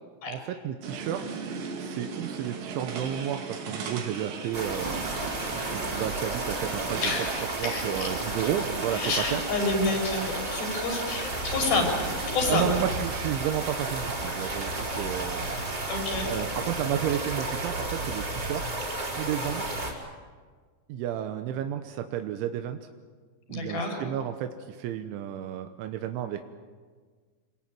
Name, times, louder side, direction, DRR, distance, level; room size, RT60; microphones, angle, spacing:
voice 1, 0.3-1.4 1.8-5.1 5.6-7.0 7.3-9.5 12.5-15.6 16.3-18.7 19.1-19.6 20.9-22.8 23.5-26.5, right 10 dB, 90° right, 7 dB, 3.4 m, -32 dB
anjuna market b, 0.8-9.2, right 5 dB, 55° right, 3.7 m, -38 dB
sound 1, 4.5-19.9, right 2 dB, 20° right, 4.5 m, -32 dB
voice 2, 7.0-8.1 9.0-12.0 12.3-12.7 15.9-16.3 23.5-24.0, left 3 dB, 50° left, 2 dB, 7.2 m, -29 dB
27.0 x 21.5 x 9.1 m, 1.5 s
omnidirectional pair, 5.4 m